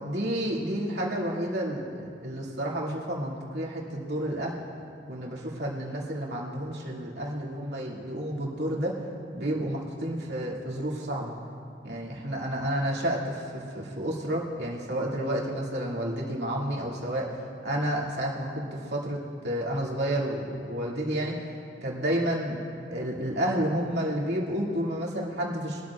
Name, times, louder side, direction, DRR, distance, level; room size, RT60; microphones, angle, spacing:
voice 1, 0.0-4.6 5.1-8.9 9.3-11.3 11.8-17.3 17.6-21.4 21.8-22.6 22.9-25.8, right 1 dB, 75° right, -3 dB, 2.3 m, -30 dB
22.5 x 12.5 x 2.4 m, 2.5 s
head